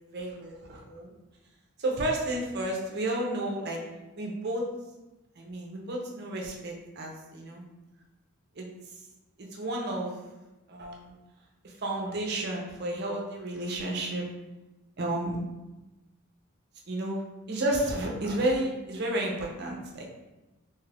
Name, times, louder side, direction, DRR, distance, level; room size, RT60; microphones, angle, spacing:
voice 1, 0.1-1.1 1.8-3.8 4.2-4.7 5.4-7.6 8.6-8.7 9.4-10.1 10.7-11.1 11.8-14.3 15.0-15.4 16.9-17.2 17.5-20.0, right 1 dB, 50° right, -1 dB, 0.6 m, -31 dB
2.8 x 2.4 x 3.3 m, 1.0 s
head